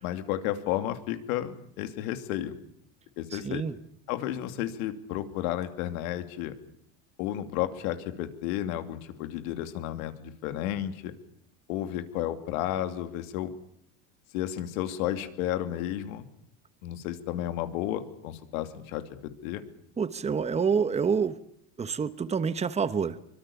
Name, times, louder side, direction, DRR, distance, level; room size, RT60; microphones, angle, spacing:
voice 1, 0.0-2.5 3.2-3.6 4.1-6.5 7.2-11.1 11.7-13.5 14.3-16.3 16.8-19.6, left 12 dB, 90° left, 9 dB, 2.8 m, -32 dB
voice 2, 3.3-3.8 20.0-21.4 21.8-23.3, right 6 dB, 15° right, 13 dB, 1.2 m, -27 dB
24.0 x 23.5 x 7.1 m, 0.71 s
cardioid pair, 135°, 41 cm